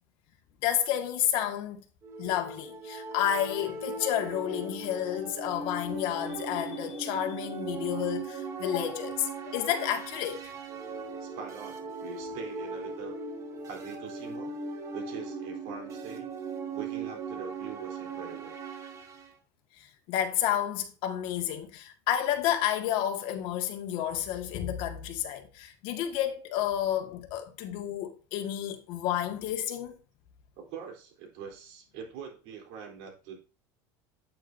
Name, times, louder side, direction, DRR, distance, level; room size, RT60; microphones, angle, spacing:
voice 1, 0.6-1.8 2.2-10.4 20.1-29.9, left 11 dB, 65° left, 1.8 m, -30 dB
sound 1, 2.0-19.3, right 4 dB, 35° right, 1.9 m, -39 dB
voice 2, 11.2-13.2 13.7-14.5 14.9-16.3 16.7-18.5 30.6-33.4, right 7 dB, 70° right, 3.7 m, -43 dB
8.9 x 8.7 x 2.7 m
cardioid pair, 135°, 10 cm